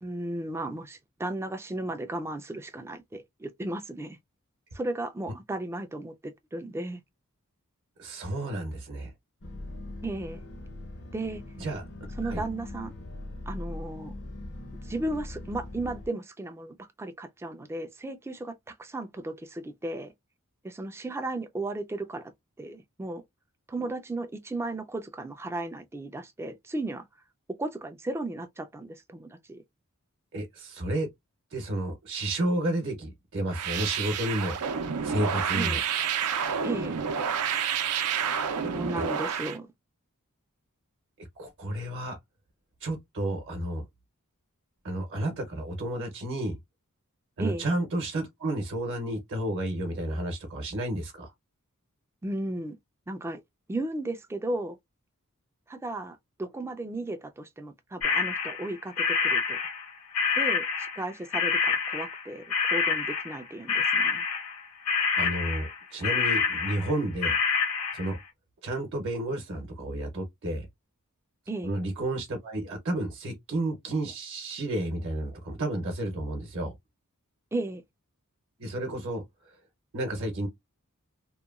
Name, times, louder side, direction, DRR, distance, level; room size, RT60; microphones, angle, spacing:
voice 1, 0.0-4.2 4.7-7.0 10.0-10.4 11.1-11.4 12.2-12.9 13.5-14.2 14.8-20.1 20.6-22.3 22.6-23.2 23.7-27.1 27.6-29.6 35.5-35.8 36.6-37.0 38.6-39.7 47.4-47.6 52.2-52.8 53.1-53.4 53.7-54.8 55.7-59.6 60.4-62.4 62.7-64.2 71.5-71.7 77.5-77.8, right 2 dB, 10° right, 0.3 m, -35 dB
voice 2, 8.0-9.1 11.6-11.8 12.2-12.4 30.3-31.1 31.5-34.6 35.0-35.8 38.9-39.0 41.4-42.2 42.8-43.8 44.8-46.6 47.4-51.3 65.2-67.3 67.9-68.2 68.6-70.7 71.6-76.8 78.6-79.2 79.9-80.5, right 1 dB, 55° right, 0.8 m, -31 dB
sound 1, 9.4-16.1, left 2 dB, 50° left, 0.6 m, -40 dB
sound 2, 33.5-39.6, right 7 dB, 90° right, 0.5 m, -29 dB
sound 3, 58.0-61.1 61.3-62.2 62.5-63.4 63.7-68.2, left 5 dB, 70° left, 0.9 m, -27 dB
2.8 x 2.2 x 2.3 m
head